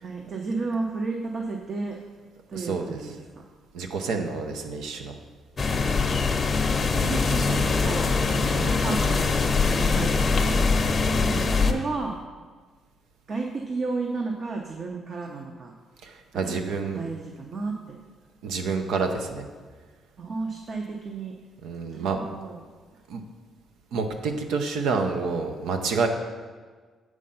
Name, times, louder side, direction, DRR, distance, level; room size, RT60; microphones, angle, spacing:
voice 1, 0.0-2.0 2.5-3.2 6.9-12.2 13.3-15.7 16.4-16.5 16.9-18.0 20.2-21.3 21.9-22.6, right 3 dB, 50° right, 1 dB, 0.8 m, -33 dB
voice 2, 2.5-3.0 3.7-5.1 6.8-7.1 16.0-17.1 18.4-19.4 21.6-22.2 23.1-23.2 23.9-26.1, right 4 dB, 85° right, 5 dB, 0.7 m, -28 dB
sound 1, 5.6-11.7, left 4 dB, 35° left, 0.7 m, -23 dB
7.6 x 4.8 x 5.6 m, 1.5 s
cardioid pair, 90°, 0 cm